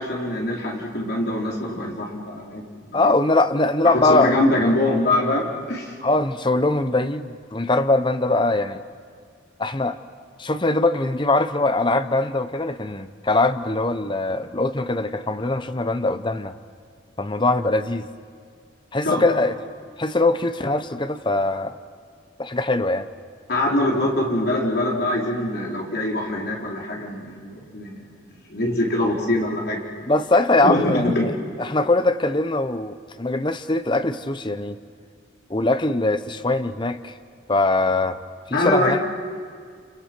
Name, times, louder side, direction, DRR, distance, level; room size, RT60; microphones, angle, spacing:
voice 1, 0.0-3.0 3.8-5.9 19.0-19.2 23.5-28.0 28.5-29.8 30.6-31.3 38.5-39.0, left 1 dB, 50° left, -2 dB, 4.3 m, -23 dB
voice 2, 2.9-4.4 6.0-8.8 9.6-10.0 10.4-16.6 17.2-18.1 18.9-19.5 20.0-21.8 22.4-23.1 30.1-31.3 31.6-34.8 35.5-37.2 37.5-38.2 38.5-39.0, left 2 dB, 25° left, 10 dB, 0.8 m, -22 dB
29.5 x 28.5 x 6.2 m, 2.1 s
head